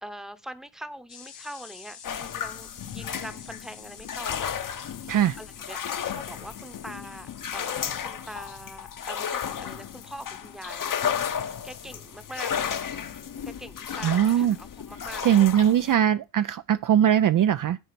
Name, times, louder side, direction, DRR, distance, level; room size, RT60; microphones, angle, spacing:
voice 1, 0.0-4.9 5.4-11.0 11.3-13.0 13.4-15.4, right 1 dB, ahead, 0.9 m, -43 dB
sound 1, 1.1-14.7, left 8 dB, 70° left, 2.2 m, -51 dB
sound 2, 2.0-15.9, left 8 dB, 50° left, 0.9 m, -33 dB
voice 2, 14.0-14.6 15.2-17.8, right 10 dB, 50° right, 0.4 m, -21 dB
10.0 x 4.0 x 6.8 m
cardioid pair, 75°, 43 cm